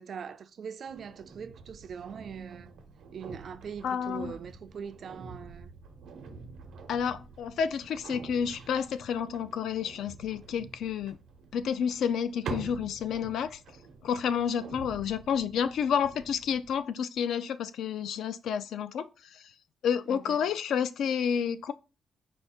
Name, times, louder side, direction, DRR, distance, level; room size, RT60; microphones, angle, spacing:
voice 1, 0.0-2.8 3.1-5.7 20.1-20.4, right 7 dB, 45° right, 0.3 m, -42 dB
sound 1, 0.9-16.8, right 4 dB, 90° right, 0.8 m, -46 dB
voice 2, 3.8-4.3 6.9-11.2 11.5-13.6 14.0-19.5 19.8-21.7, left 7 dB, 75° left, 0.3 m, -30 dB
4.6 x 2.4 x 4.2 m
wide cardioid pair, 170°, 0 cm